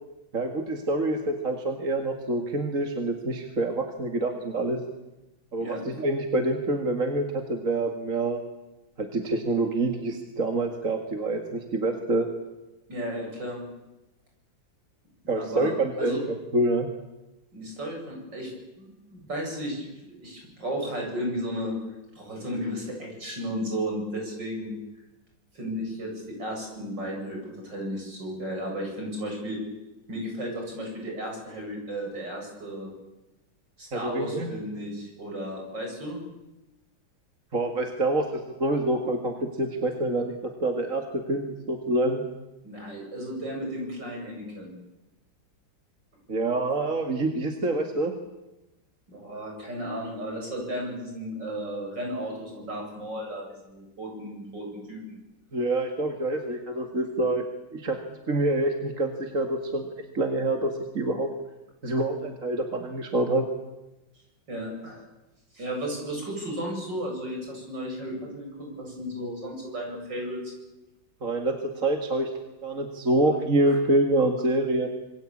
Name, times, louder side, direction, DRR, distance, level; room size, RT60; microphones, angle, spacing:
voice 1, 0.3-4.8 5.5-8.4 9.0-12.3 15.3-16.9 33.9-34.5 37.5-40.3 40.6-42.2 46.3-48.1 55.5-57.4 57.7-58.0 58.3-59.9 60.1-61.3 61.8-63.5 71.2-71.6 71.8-72.3 72.6-74.9, right 2 dB, 40° right, 4 dB, 2.4 m, -26 dB
voice 2, 12.9-13.6 15.4-15.7 16.0-16.2 17.5-18.5 18.8-21.7 22.2-24.7 25.5-29.6 30.1-32.9 33.8-36.2 42.6-44.7 49.1-55.2 64.5-65.1 65.5-70.5 73.7-73.8, equal, 65° right, 0 dB, 8.8 m, -34 dB
27.0 x 22.0 x 8.7 m, 0.99 s
omnidirectional pair, 2.1 m